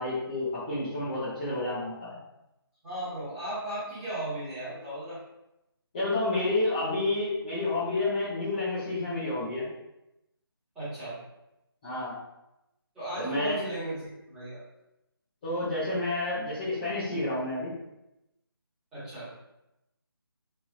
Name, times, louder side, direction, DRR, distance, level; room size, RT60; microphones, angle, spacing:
voice 1, 0.0-2.2 5.9-9.6 11.8-12.1 13.2-13.6 15.4-17.7, left 2 dB, 20° left, -13 dB, 0.6 m, -30 dB
voice 2, 2.8-5.2 10.7-11.2 12.9-14.6 18.9-19.3, right 1 dB, 5° right, -15 dB, 1.1 m, -36 dB
3.3 x 2.6 x 2.4 m, 0.90 s
figure-of-eight pair, 160°, 13 cm